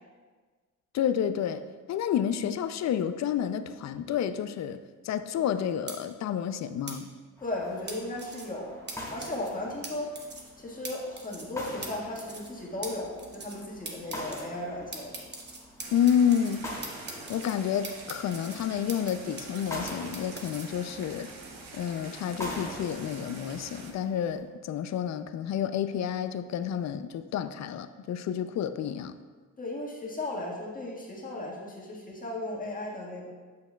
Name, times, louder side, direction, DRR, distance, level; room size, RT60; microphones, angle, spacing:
voice 1, 0.9-1.6 1.9-4.8 5.0-7.1 15.9-16.7 17.3-21.3 21.7-29.2, left 9 dB, 55° left, 11 dB, 0.4 m, -29 dB
sound 1, 5.9-6.0 6.9-7.0 7.9-8.5 8.9-9.0 9.2-9.5 9.8-9.9 10.2-10.5 10.8-10.9 11.2-11.5 11.8-11.9 12.2-12.5 12.8-12.9 13.2-13.6 13.9-14.4 14.9-16.6 16.8-17.5 17.8-19.1 19.4-20.6, right 3 dB, 30° right, 1.0 m, -41 dB
voice 2, 7.4-8.7 9.1-10.1 10.6-15.1 29.6-33.3, left 1 dB, 25° left, -3 dB, 1.6 m, -36 dB
sound 2, 7.4-24.4, left 1 dB, 10° left, 1.3 m, -44 dB
sound 3, 15.8-23.9, right 3 dB, 85° right, 0.9 m, -46 dB
8.3 x 6.7 x 2.3 m, 1.4 s
cardioid pair, 105°, 33 cm